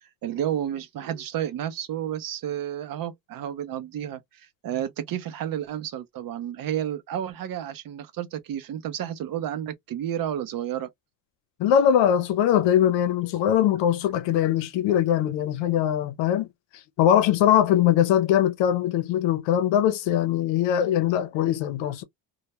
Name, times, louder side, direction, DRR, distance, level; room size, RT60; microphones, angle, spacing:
voice 1, 0.2-10.9, right 10 dB, 50° right, 0.5 m, -31 dB
voice 2, 11.6-16.5 17.0-22.0, left 10 dB, 70° left, 0.6 m, -21 dB
2.1 x 2.1 x 2.8 m
supercardioid pair, 85°, 46 cm